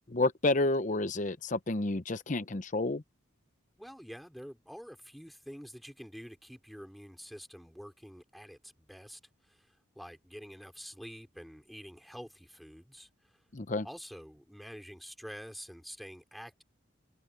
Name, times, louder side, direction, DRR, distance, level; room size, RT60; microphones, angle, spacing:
voice 1, 0.1-3.0 13.5-13.9, left 2 dB, 40° left, 0.7 m, -30 dB
voice 2, 3.8-13.4 13.8-16.6, equal, ahead, 3.1 m, -48 dB
head